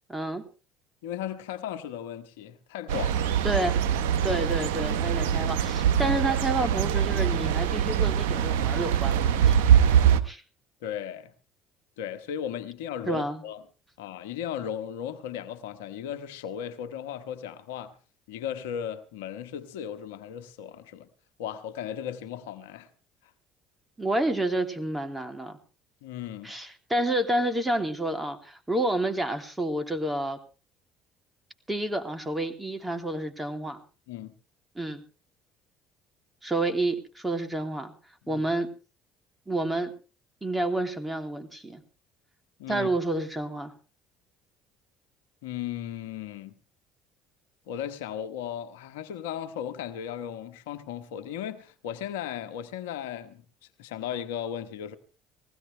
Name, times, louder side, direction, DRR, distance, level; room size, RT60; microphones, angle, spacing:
voice 1, 0.1-0.4 3.4-3.8 4.2-9.6 10.2-10.4 13.1-13.4 24.0-25.6 26.4-30.4 31.7-33.8 34.7-35.0 36.4-37.9 38.3-38.7 39.5-39.9 40.4-41.8 42.7-43.7, right 1 dB, 15° right, 2.7 m, -29 dB
voice 2, 1.0-3.3 10.8-11.3 12.0-13.6 14.0-17.9 18.3-21.1 21.4-22.9 26.0-26.5 34.1-34.3 38.2-38.4 42.6-42.9 45.4-46.5 47.7-53.4 53.8-55.0, left 9 dB, 85° left, 1.1 m, -36 dB
sound 1, 2.9-10.2, right 9 dB, 80° right, 1.0 m, -23 dB
20.0 x 16.0 x 3.3 m
hypercardioid pair, 70°, 0 cm